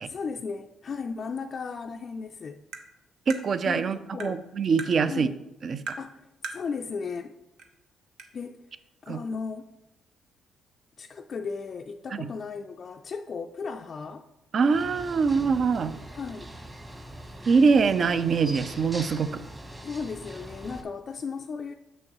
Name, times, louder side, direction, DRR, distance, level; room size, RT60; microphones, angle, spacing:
voice 1, 0.0-2.6 3.7-4.5 5.0-5.4 6.0-7.4 8.3-8.7 9.0-9.6 11.0-14.3 16.1-16.6 19.8-21.7, left 5 dB, 50° left, 3 dB, 0.3 m, -35 dB
Tap, 2.7-2.9 3.3-3.4 4.2-4.4 4.8-4.9 5.9-6.1 6.4-6.6 7.6-7.7 8.2-8.3, right 4 dB, 80° right, 0.7 m, -37 dB
voice 2, 3.3-5.3 5.6-5.8 9.1-9.2 12.1-12.3 14.5-16.0 17.4-19.4, right 5 dB, 50° right, 13 dB, 0.4 m, -24 dB
sound 1, 14.7-20.8, right 1 dB, 20° right, 1.1 m, -42 dB
6.5 x 6.2 x 3.0 m, 0.98 s
cardioid pair, 90°, 0 cm